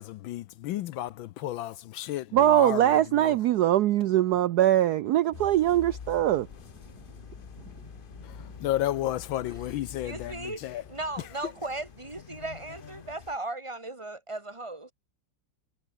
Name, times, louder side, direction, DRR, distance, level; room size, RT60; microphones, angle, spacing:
voice 1, 0.0-3.4 8.2-10.8 11.2-11.5, left 14 dB, 75° left, 1.4 m, -33 dB
voice 2, 2.3-6.5, right 12 dB, 75° right, 0.9 m, -22 dB
sound 1, 4.0-13.4, right 2 dB, 50° right, 7.8 m, -57 dB
sound 2, 5.3-13.4, left 6 dB, 45° left, 0.6 m, -46 dB
voice 3, 10.0-10.6 10.9-14.9, right 2 dB, 15° right, 2.8 m, -36 dB
omnidirectional pair, 2.2 m